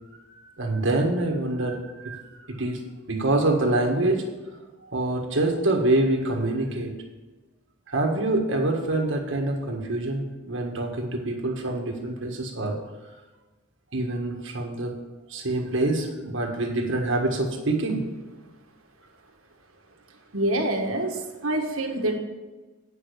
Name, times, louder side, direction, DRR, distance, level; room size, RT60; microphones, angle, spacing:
voice 1, 0.6-2.8 3.1-4.2 4.8-6.9 7.9-12.8 13.9-14.9 15.3-18.0, right 2 dB, 60° right, 1 dB, 1.5 m, -25 dB
voice 2, 20.3-22.2, right 1 dB, 80° right, 3 dB, 1.6 m, -26 dB
9.2 x 6.4 x 6.6 m, 1.2 s
head